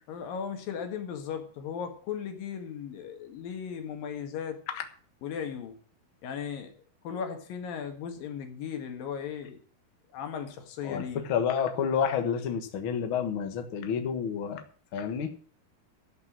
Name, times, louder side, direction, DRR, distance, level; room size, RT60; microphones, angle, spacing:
voice 1, 0.1-4.6 5.2-5.8 6.2-6.7 7.0-9.6 10.1-11.2, left 7 dB, 65° left, 6 dB, 3.2 m, -36 dB
voice 2, 11.3-14.6 14.9-15.3, left 7 dB, 90° left, 7 dB, 1.1 m, -29 dB
13.5 x 6.0 x 7.4 m, 0.43 s
omnidirectional pair, 4.7 m